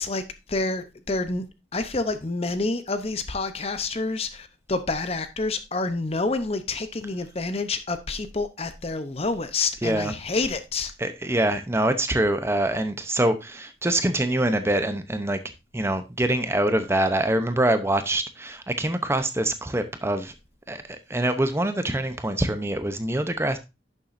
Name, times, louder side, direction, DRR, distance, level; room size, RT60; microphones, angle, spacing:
voice 1, 0.0-1.4 1.7-10.9, left 3 dB, 30° left, 0.7 m, -28 dB
voice 2, 9.8-10.1 11.0-15.4 15.7-20.3 20.7-23.6, right 1 dB, 15° right, 0.7 m, -24 dB
11.0 x 7.2 x 2.6 m
head